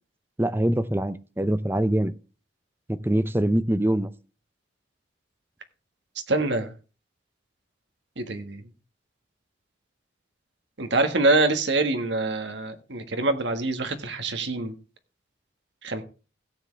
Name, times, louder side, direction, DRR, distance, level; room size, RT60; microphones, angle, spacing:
voice 1, 0.4-2.1 2.9-4.1, right 1 dB, 10° right, 0.6 m, -24 dB
voice 2, 6.3-6.7 8.2-8.6 10.8-14.8 15.8-16.0, right 2 dB, 75° right, 1.6 m, -25 dB
16.5 x 7.5 x 3.3 m
head